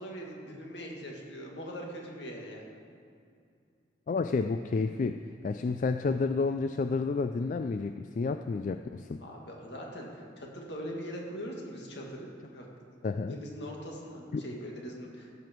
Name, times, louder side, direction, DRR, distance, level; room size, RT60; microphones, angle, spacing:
voice 1, 0.0-2.7 9.2-12.7 13.3-15.4, equal, 65° left, -1 dB, 2.1 m, -41 dB
voice 2, 4.1-9.2 13.0-13.4 14.3-14.4, left 4 dB, 45° left, 8 dB, 0.3 m, -30 dB
15.5 x 7.8 x 4.5 m, 2.4 s
head